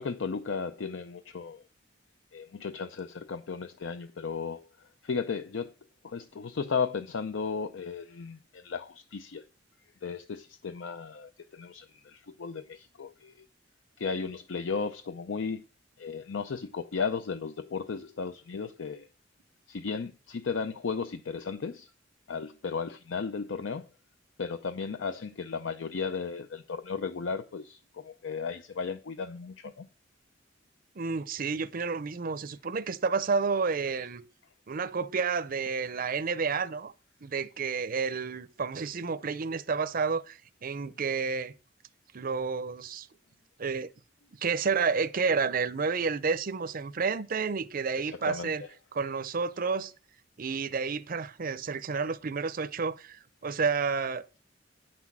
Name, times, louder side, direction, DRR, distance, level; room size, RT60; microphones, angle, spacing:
voice 1, 0.0-1.6 2.3-4.7 5.0-5.7 6.0-9.4 10.0-13.5 14.0-15.6 16.0-19.1 19.7-21.9 22.3-23.9 24.4-29.9 48.0-48.7, left 5 dB, 75° left, 0.5 m, -35 dB
voice 2, 31.0-34.2 34.7-36.9 37.2-41.5 42.1-43.1 43.6-43.9 44.4-48.6 48.9-49.9 50.4-54.4, right 5 dB, 50° right, 0.6 m, -30 dB
9.3 x 6.1 x 5.9 m
head